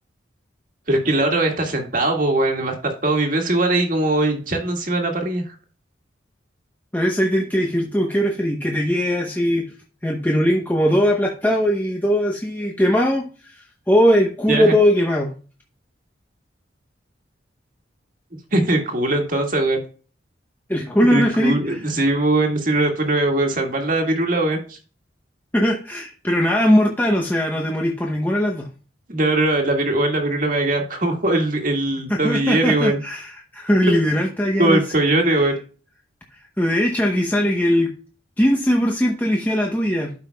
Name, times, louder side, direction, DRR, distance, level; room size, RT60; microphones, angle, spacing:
voice 1, 0.9-5.5 14.5-14.7 18.5-19.8 21.1-24.8 29.1-33.0 33.9-34.0 34.6-35.5, right 2 dB, 45° right, 2 dB, 1.8 m, -20 dB
voice 2, 6.9-9.7 10.0-15.3 20.7-21.8 25.5-28.7 32.1-34.8 36.6-37.9 38.4-40.1, equal, 10° left, 0 dB, 0.8 m, -20 dB
12.5 x 5.6 x 2.2 m, 0.37 s
head